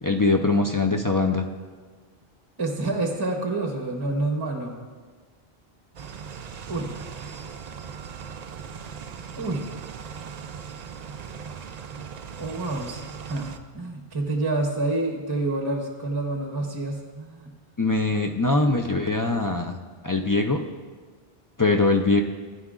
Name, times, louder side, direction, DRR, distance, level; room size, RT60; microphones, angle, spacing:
voice 1, 0.0-1.5 17.8-19.8 20.0-20.7 21.6-22.2, left 3 dB, 35° left, 3 dB, 0.3 m, -22 dB
voice 2, 2.6-4.8 6.7-6.9 9.4-9.7 12.4-17.5, right 2 dB, 25° right, 2 dB, 0.9 m, -28 dB
sound 1, 5.9-13.6, right 6 dB, 55° right, 0.5 m, -39 dB
15.0 x 9.5 x 2.4 m, 1.5 s
omnidirectional pair, 1.0 m